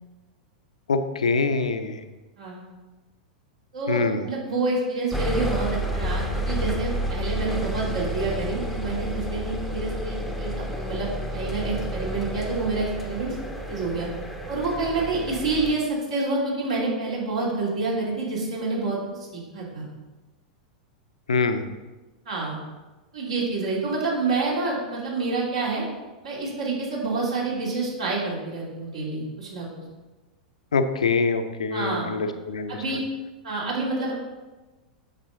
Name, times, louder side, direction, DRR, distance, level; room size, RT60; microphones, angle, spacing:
voice 1, 0.9-2.0 3.9-4.2 21.3-21.7 30.7-32.8, left 4 dB, 70° left, 8 dB, 0.7 m, -24 dB
voice 2, 3.7-13.4 13.7-14.1 14.5-19.9 22.2-22.6 23.1-25.9 26.2-29.8 31.7-32.1 32.7-33.0 33.4-34.1, right 3 dB, 60° right, -4 dB, 2.9 m, -28 dB
sound 1, 5.1-15.7, equal, 5° right, 0.9 m, -30 dB
9.0 x 6.8 x 3.8 m, 1.2 s
figure-of-eight pair, 95°, 4 cm